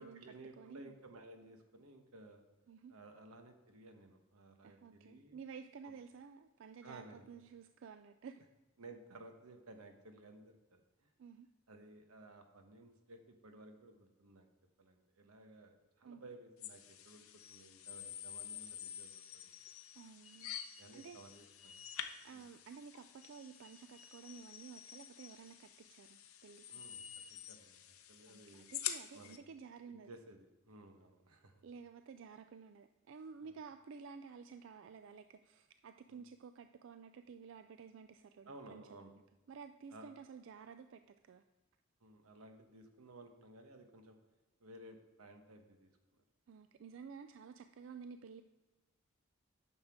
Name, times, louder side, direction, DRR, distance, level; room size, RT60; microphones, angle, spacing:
voice 1, 0.0-2.4 2.9-5.4 6.8-7.3 8.8-11.1 11.7-14.5 14.8-19.5 20.8-21.8 22.3-22.5 26.7-27.0 27.5-28.7 29.1-29.4 29.9-31.5 33.4-33.5 36.1-36.2 38.5-39.1 39.9-40.1 42.0-44.2 44.6-45.9, right 2 dB, 90° right, 6 dB, 1.1 m, -56 dB
voice 2, 0.6-0.9 2.7-2.9 4.6-8.4 11.2-11.5 16.0-16.2 20.0-20.6 20.9-21.2 22.2-26.6 28.3-30.1 31.6-39.1 39.5-41.4 46.5-48.4, right 6 dB, 60° right, 9 dB, 0.3 m, -53 dB
sound 1, 16.6-29.4, left 10 dB, 80° left, 0.6 m, -48 dB
9.6 x 6.5 x 3.6 m, 1.2 s
head